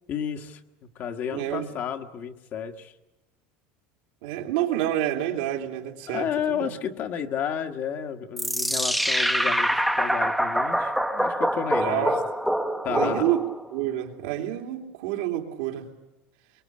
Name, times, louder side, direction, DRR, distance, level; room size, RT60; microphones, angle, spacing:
voice 1, 0.1-3.0 6.1-12.1 12.8-13.3, left 8 dB, 40° left, 1.5 m, -32 dB
voice 2, 1.3-1.7 4.2-6.7 11.8-12.2 12.9-13.4 13.7-15.9, right 12 dB, 85° right, 3.0 m, -28 dB
sound 1, 8.4-13.7, equal, ahead, 0.9 m, -25 dB
23.0 x 22.5 x 8.6 m
cardioid pair, 145°, 5 cm